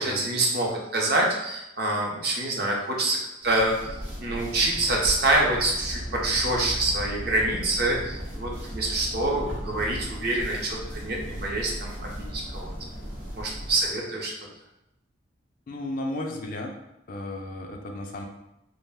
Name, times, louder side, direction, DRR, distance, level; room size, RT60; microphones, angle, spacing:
voice 1, 0.0-3.2 3.4-3.9 4.2-12.7 13.4-14.3, right 2 dB, 55° right, -2 dB, 0.6 m, -26 dB
sound 1, 3.4-14.0, equal, 80° right, 0.8 m, -36 dB
voice 2, 15.7-16.7 17.1-18.3, left 1 dB, 45° left, 2 dB, 0.3 m, -34 dB
2.4 x 2.0 x 3.4 m, 0.88 s
head